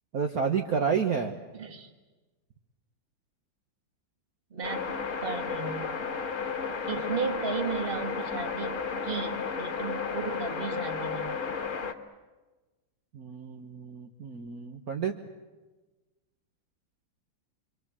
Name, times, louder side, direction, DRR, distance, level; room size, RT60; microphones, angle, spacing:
voice 1, 0.1-1.4 13.1-15.2, right 6 dB, 50° right, 3 dB, 1.5 m, -30 dB
voice 2, 1.5-1.9 4.5-5.9 6.9-11.4, right 5 dB, 30° right, 6 dB, 1.7 m, -35 dB
sound 1, 4.6-11.9, left 5 dB, 40° left, 1.6 m, -33 dB
26.5 x 25.0 x 7.4 m, 1.2 s
omnidirectional pair, 2.2 m